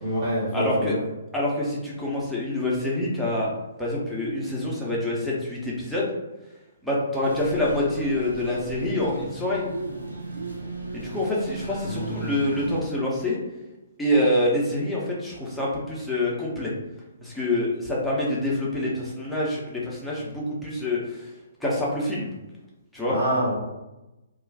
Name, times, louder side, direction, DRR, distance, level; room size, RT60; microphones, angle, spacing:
voice 1, 0.0-1.0 11.8-12.4 23.1-23.6, equal, 35° right, -9 dB, 1.0 m, -26 dB
voice 2, 0.5-0.9 1.3-3.5 3.8-6.1 6.8-9.7 10.9-13.4 14.0-16.7 17.2-21.3 21.6-22.3 22.9-23.2, left 1 dB, ahead, -7 dB, 0.7 m, -26 dB
sound 1, 7.2-12.8, right 2 dB, 85° right, 0.6 m, -36 dB
2.3 x 2.3 x 3.4 m, 1.0 s
figure-of-eight pair, 130°, 0 cm